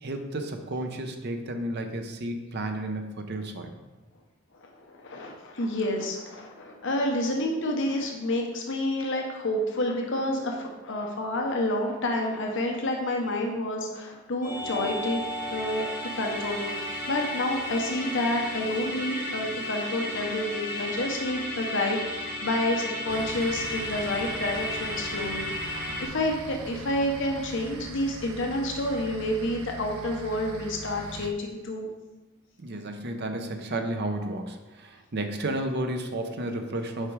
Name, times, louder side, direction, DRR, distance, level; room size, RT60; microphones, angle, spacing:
voice 1, 0.0-3.7 32.6-37.1, right 1 dB, 50° right, 5 dB, 0.7 m, -32 dB
voice 2, 4.5-15.2 15.5-15.9 16.1-31.9, left 1 dB, 60° left, 1 dB, 0.8 m, -29 dB
Musical instrument, 14.4-26.1, left 1 dB, 40° left, 2.1 m, -34 dB
sound 1, 23.1-31.3, right 3 dB, 85° right, 0.6 m, -41 dB
6.6 x 4.9 x 4.7 m, 1.2 s
head